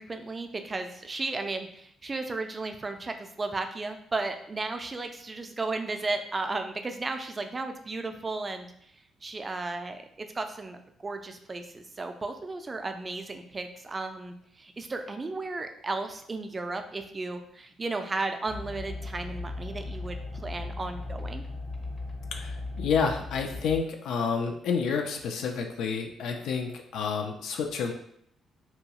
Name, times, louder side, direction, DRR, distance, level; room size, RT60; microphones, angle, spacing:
voice 1, 0.0-8.7 9.2-21.4, right 3 dB, 30° right, 6 dB, 0.3 m, -34 dB
sound 1, 18.5-23.8, left 2 dB, 25° left, 0.5 m, -37 dB
voice 2, 22.3-27.9, left 6 dB, 80° left, 4 dB, 0.3 m, -29 dB
2.8 x 2.2 x 2.8 m, 0.70 s
cardioid pair, 90°, 0 cm